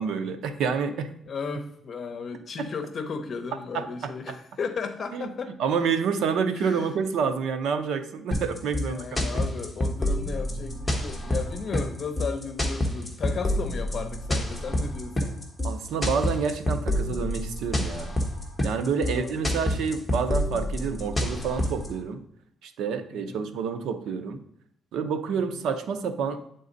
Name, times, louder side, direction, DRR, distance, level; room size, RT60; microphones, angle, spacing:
voice 1, 0.0-1.1 2.6-2.7 3.7-4.4 5.1-5.3 5.6-9.2 15.6-18.1 18.6-22.2 22.6-24.4 24.9-26.4, right 6 dB, 85° right, 9 dB, 0.7 m, -28 dB
voice 2, 1.3-5.6 6.6-6.9 8.8-15.4 19.0-19.3 23.1-23.4 25.5-25.6, left 5 dB, 40° left, 7 dB, 0.8 m, -35 dB
sound 1, 8.3-21.9, left 1 dB, 5° left, 1.2 m, -27 dB
8.5 x 3.9 x 3.9 m, 0.74 s
cardioid pair, 150°, 0 cm